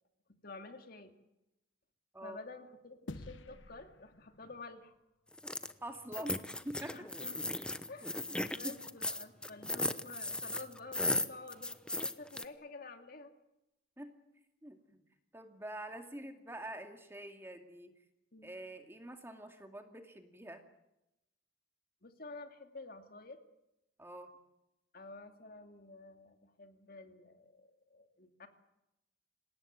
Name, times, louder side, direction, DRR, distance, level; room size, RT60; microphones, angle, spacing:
voice 1, 0.4-1.1 2.2-4.9 6.2-6.4 6.9-7.4 7.9-13.3 18.3-18.6 22.0-23.4 24.9-28.5, left 3 dB, 50° left, 7 dB, 2.4 m, -50 dB
sound 1, 3.1-5.7, left 2 dB, 75° left, 1.1 m, -51 dB
sound 2, 5.4-5.7 6.1-12.4, left 2 dB, 5° left, 0.9 m, -36 dB
voice 2, 5.8-7.0 8.4-8.8 14.0-14.2 14.6-15.0 15.3-17.9 18.4-20.6 24.0-24.3, right 1 dB, 10° right, 6 dB, 2.4 m, -46 dB
27.0 x 18.0 x 9.2 m, 0.90 s
head